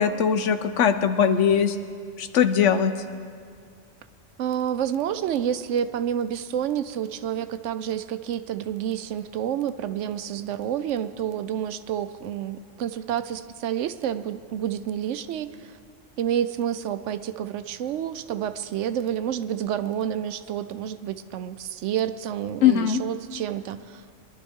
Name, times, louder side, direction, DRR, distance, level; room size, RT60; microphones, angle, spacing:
voice 1, 0.0-1.8 2.2-2.9 22.6-23.0, left 8 dB, 75° left, 10 dB, 1.0 m, -20 dB
voice 2, 4.4-15.8 16.2-24.0, right 9 dB, 75° right, 12 dB, 0.9 m, -29 dB
22.5 x 11.5 x 3.6 m, 2.1 s
omnidirectional pair, 1.3 m